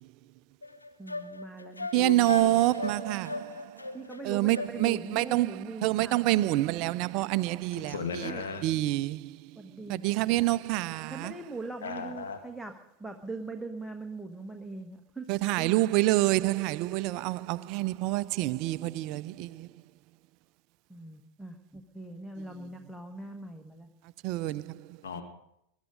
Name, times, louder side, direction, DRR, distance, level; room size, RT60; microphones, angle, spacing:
sound 1, 0.6-5.2, left 2 dB, 80° left, 0.8 m, -37 dB
voice 1, 1.0-2.6 3.9-6.6 8.2-8.4 9.6-10.3 11.1-12.7 13.0-15.2 15.6-15.7 20.9-23.9, right 3 dB, ahead, 1.2 m, -41 dB
voice 2, 1.9-3.3 4.3-5.5 5.8-7.9 8.6-9.2 9.9-11.3 15.3-19.5 24.2-24.6, right 17 dB, 40° right, 0.5 m, -27 dB
voice 3, 7.7-8.6 11.8-12.4 25.0-25.2, left 5 dB, 65° left, 1.9 m, -36 dB
20.0 x 11.5 x 5.2 m
figure-of-eight pair, 90°, 0 cm